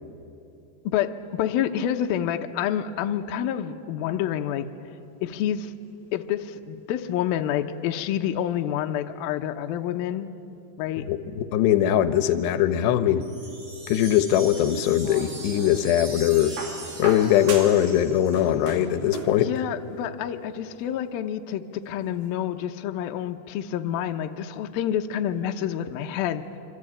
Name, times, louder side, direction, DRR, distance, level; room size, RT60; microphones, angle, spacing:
voice 1, 0.9-4.7 5.2-5.7 6.1-10.3 10.8-11.1 19.4-26.4, left 10 dB, 75° left, 6 dB, 2.5 m, -28 dB
voice 2, 11.0-13.2 13.9-16.6 17.0-19.6, left 11 dB, 90° left, 11 dB, 3.1 m, -21 dB
sound 1, 13.2-18.6, right 2 dB, 45° right, 6.2 m, -41 dB
sound 2, 14.8-15.8 16.6-17.9 18.2-19.4 20.5-20.6, right 4 dB, 70° right, 4.6 m, -36 dB
26.0 x 25.5 x 8.9 m, 2.7 s
omnidirectional pair, 4.7 m